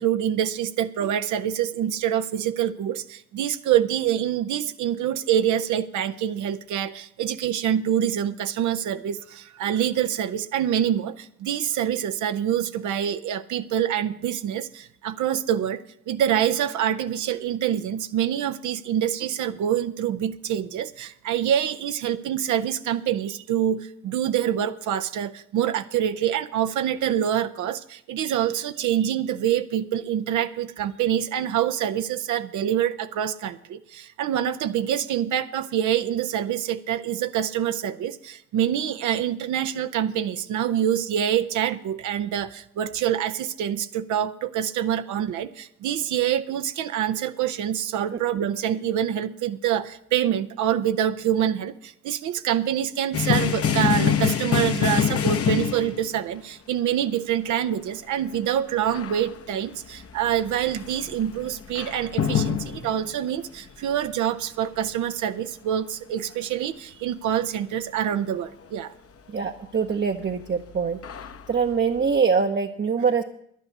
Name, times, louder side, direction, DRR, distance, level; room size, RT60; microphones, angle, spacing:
voice 1, 0.0-68.9, right 10 dB, 70° right, 10 dB, 0.7 m, -26 dB
sound 1, 53.1-56.2 58.9-59.5 59.8-63.1 70.3-71.6 72.2-72.3, left 8 dB, 50° left, 0.9 m, -25 dB
voice 2, 69.3-71.0 71.5-73.2, right 5 dB, 35° right, 4 dB, 0.8 m, -23 dB
10.5 x 10.5 x 6.6 m, 0.72 s
hypercardioid pair, 50°, 31 cm